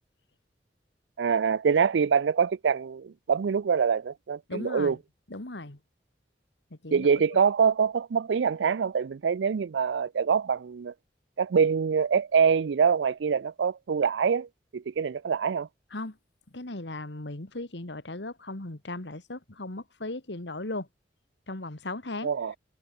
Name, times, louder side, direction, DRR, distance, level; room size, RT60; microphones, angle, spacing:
voice 1, 1.2-5.0 6.9-10.9 11.4-14.5 14.7-15.7 22.2-22.5, right 6 dB, 85° right, 0.4 m, -25 dB
voice 2, 4.5-5.0 5.3-5.8 6.7-7.1 15.9-16.2 16.5-20.9 21.5-22.3, left 2 dB, 80° left, 2.2 m, -37 dB
head